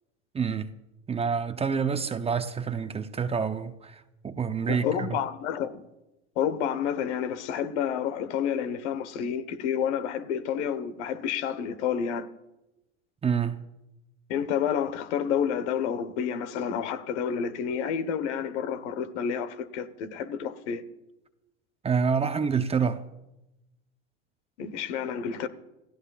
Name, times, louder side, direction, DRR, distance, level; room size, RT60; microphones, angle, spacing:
voice 1, 0.3-0.7 1.1-5.1 13.2-13.6 21.8-23.0, right 6 dB, 15° right, 0.7 m, -27 dB
voice 2, 4.7-5.8 6.4-12.3 14.3-20.8 24.6-25.5, left 8 dB, 75° left, 1.3 m, -29 dB
27.5 x 15.5 x 2.4 m
hypercardioid pair, 105°, 35 cm